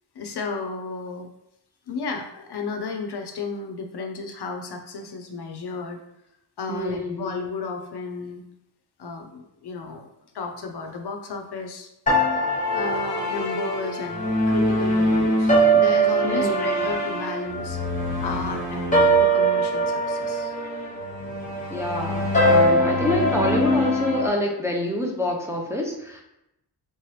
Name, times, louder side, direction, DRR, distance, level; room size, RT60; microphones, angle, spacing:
voice 1, 0.1-1.3 1.9-6.0 6.6-8.4 9.0-10.1 10.3-11.9 12.7-17.8 18.2-20.5, left 4 dB, 65° left, 4 dB, 0.6 m, -33 dB
voice 2, 6.7-7.2 16.2-16.8 21.7-26.2, left 1 dB, 5° right, -1 dB, 0.5 m, -27 dB
sound 1, 12.1-24.3, right 1 dB, 20° left, 0.9 m, -22 dB
3.2 x 3.0 x 3.1 m, 0.85 s
wide cardioid pair, 110°, 44 cm